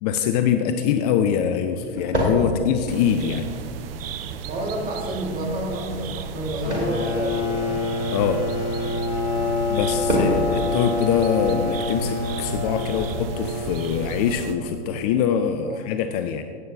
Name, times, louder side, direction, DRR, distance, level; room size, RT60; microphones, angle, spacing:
voice 1, 0.0-3.5 8.1-8.4 9.7-16.4, left 8 dB, 35° left, 8 dB, 0.5 m, -23 dB
sound 1, 0.7-13.1, equal, 90° right, 2.8 m, -32 dB
sound 2, 2.9-14.5, right 6 dB, 55° right, 0.8 m, -34 dB
voice 2, 4.4-7.9 10.3-10.5 15.7-15.8, right 1 dB, 25° right, -1 dB, 2.4 m, -30 dB
sound 3, 6.6-15.1, left 3 dB, 70° left, 2.3 m, -27 dB
16.0 x 8.5 x 2.7 m, 2.4 s
figure-of-eight pair, 105°, 34 cm